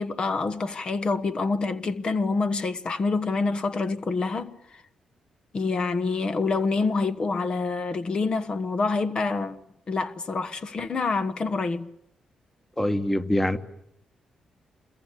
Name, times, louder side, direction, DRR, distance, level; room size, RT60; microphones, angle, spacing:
voice 1, 0.0-4.6 5.5-9.6 9.9-11.9, left 3 dB, 45° left, 1.3 m, -27 dB
voice 2, 12.8-13.6, left 1 dB, 10° left, 1.5 m, -24 dB
27.5 x 22.0 x 8.4 m
cardioid pair, 75°, 2 cm